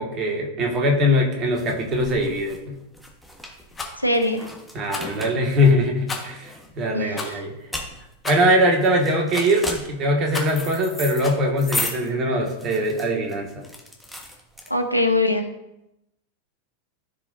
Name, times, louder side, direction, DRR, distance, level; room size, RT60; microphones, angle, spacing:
voice 1, 0.0-2.7 4.7-7.5 8.2-13.6, equal, 30° right, 1 dB, 2.0 m, -22 dB
sound 1, 0.7-15.1, left 1 dB, ahead, 1.4 m, -36 dB
Rattle, 3.7-4.0 4.9-5.2 6.1-6.4 7.1-7.4 8.2-8.6 9.3-9.7 10.3-10.6 11.2-11.4, left 4 dB, 15° left, 1.6 m, -33 dB
voice 2, 4.0-4.5 6.9-7.2 14.7-15.4, left 2 dB, 90° left, 5 dB, 0.9 m, -21 dB
14.0 x 5.0 x 2.7 m, 0.88 s
figure-of-eight pair, 90°, 0 cm